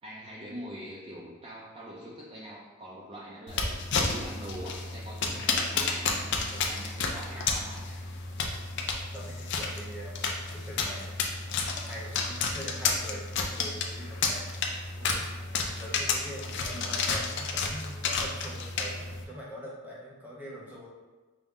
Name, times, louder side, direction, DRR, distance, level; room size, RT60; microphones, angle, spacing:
voice 1, 0.0-8.0 16.7-17.1, equal, 25° right, -6 dB, 0.4 m, -44 dB
sound 1, 3.5-19.2, left 4 dB, 55° left, 0.5 m, -31 dB
voice 2, 5.3-5.7 6.4-6.7 7.3-7.4 9.1-11.5 11.8-14.5 15.0-15.3 15.7-20.9, equal, 10° right, -5 dB, 0.8 m, -44 dB
5.3 x 2.1 x 3.5 m, 1.3 s
head